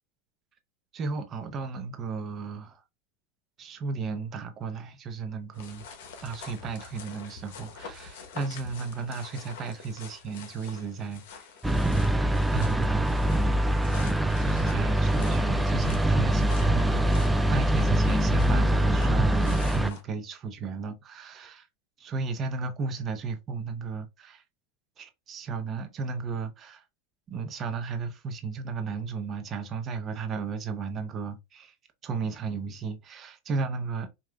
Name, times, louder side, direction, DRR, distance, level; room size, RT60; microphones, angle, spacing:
voice 1, 0.9-2.8 3.6-5.9 6.2-11.5 12.5-13.3 14.4-21.7 22.0-24.4 25.0-26.8 27.3-31.7 32.0-34.1, right 4 dB, 35° right, 0.8 m, -34 dB
sound 1, 5.5-20.0, left 5 dB, 75° left, 1.0 m, -46 dB
sound 2, 11.6-19.9, right 1 dB, 5° right, 0.3 m, -24 dB
4.8 x 2.6 x 2.3 m
supercardioid pair, 110°, 0 cm